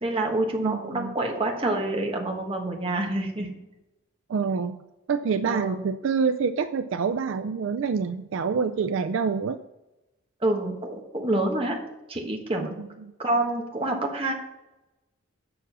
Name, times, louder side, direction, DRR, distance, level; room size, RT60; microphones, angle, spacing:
voice 1, 0.0-3.5 5.4-5.8 10.4-11.7 12.1-12.7 13.2-14.3, right 2 dB, 25° right, 1 dB, 1.3 m, -27 dB
voice 2, 0.6-1.1 4.3-4.8 5.1-9.6, right 5 dB, 65° right, 9 dB, 0.4 m, -26 dB
7.0 x 6.1 x 6.0 m, 0.98 s
head